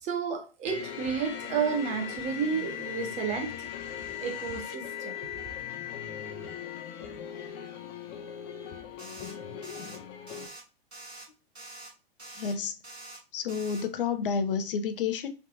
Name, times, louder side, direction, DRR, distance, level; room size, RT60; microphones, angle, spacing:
voice 1, 0.0-3.7 4.2-5.5, right 6 dB, 20° right, 0.7 m, -32 dB
sound 1, 0.6-10.5, left 9 dB, 20° left, 0.3 m, -39 dB
sound 2, 9.0-9.4 9.6-10.0 10.3-10.6 10.9-11.3 11.6-11.9 12.2-12.6 12.8-13.2 13.5-13.9, right 2 dB, 90° right, 1.1 m, -45 dB
voice 2, 12.3-12.8 13.3-15.3, left 6 dB, 60° left, 0.6 m, -30 dB
3.3 x 2.8 x 3.6 m
figure-of-eight pair, 110°, 31 cm